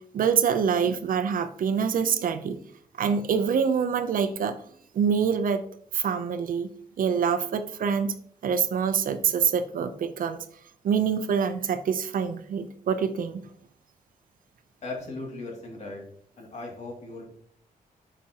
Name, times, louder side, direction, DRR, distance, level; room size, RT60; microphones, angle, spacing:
voice 1, 0.1-2.6 3.0-4.6 4.9-5.6 5.9-6.7 7.0-8.1 8.4-10.4 10.8-13.4, right 7 dB, 65° right, 10 dB, 0.6 m, -25 dB
voice 2, 14.8-16.0 16.4-17.2, left 2 dB, 50° left, 0 dB, 2.4 m, -37 dB
8.5 x 6.0 x 2.9 m, 0.64 s
wide cardioid pair, 135°, 15 cm